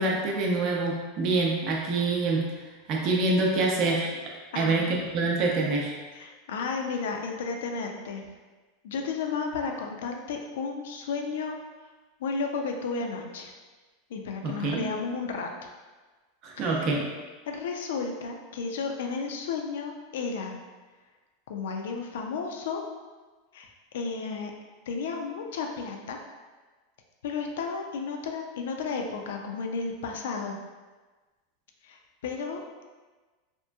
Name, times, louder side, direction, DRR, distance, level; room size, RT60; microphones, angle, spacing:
voice 1, 0.0-2.5 2.9-4.1 4.5-5.9 14.4-14.8 16.4-17.1, right 3 dB, 50° right, -1 dB, 0.5 m, -26 dB
voice 2, 6.1-8.2 8.8-11.6 12.2-13.5 14.1-15.7 16.6-16.9 17.5-20.5 21.5-22.8 23.5-24.5 24.9-26.2 27.2-30.6 31.8-32.8, left 5 dB, 80° left, 3 dB, 0.4 m, -33 dB
2.9 x 2.5 x 2.2 m, 1.3 s
supercardioid pair, 115°, 0 cm